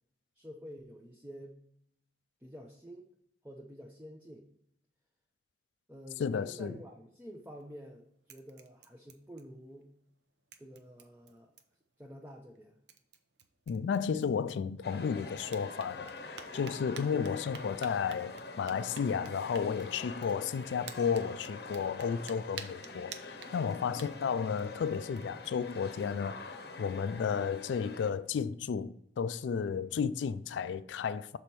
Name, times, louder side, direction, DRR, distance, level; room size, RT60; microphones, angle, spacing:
voice 1, 0.3-1.6 2.4-3.1 3.4-4.5 5.9-9.9 10.6-11.5 12.0-12.8 24.0-24.1, equal, 10° right, 0.5 m, -49 dB
voice 2, 6.2-6.7 13.7-31.4, left 6 dB, 80° left, 0.3 m, -33 dB
sound 1, 7.4-7.9 8.3-9.8 10.1-10.2 10.5-11.9 12.5-12.6 12.9-15.0 15.4-25.5, right 6 dB, 70° right, 0.7 m, -52 dB
sound 2, 14.8-28.1, left 3 dB, 60° left, 0.8 m, -45 dB
6.7 x 4.3 x 4.5 m
head